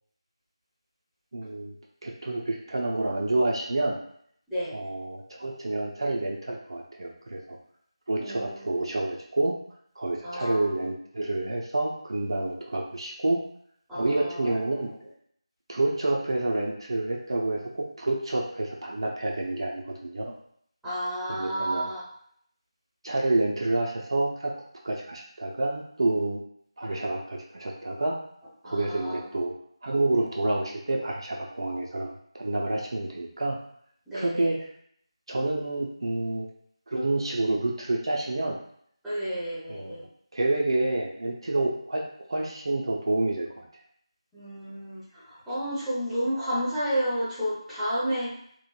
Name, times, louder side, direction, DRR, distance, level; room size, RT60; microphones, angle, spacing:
voice 1, 1.3-1.8 2.0-4.0 4.7-7.6 8.1-9.5 10.0-13.4 13.9-14.9 15.7-20.4 21.3-21.9 23.0-24.5 24.8-26.4 26.8-28.2 28.6-29.5 29.8-33.6 34.1-34.6 35.3-36.5 36.9-38.6 39.7-40.0 40.3-42.0 42.3-43.7, right 2 dB, 55° right, -1 dB, 0.4 m, -28 dB
voice 2, 8.2-8.7 10.2-10.7 13.9-14.6 20.8-22.0 28.6-29.2 34.1-34.5 39.0-40.0 44.3-48.3, equal, ahead, -14 dB, 0.6 m, -31 dB
3.0 x 2.0 x 2.2 m, 0.66 s
figure-of-eight pair, 165°, 3 cm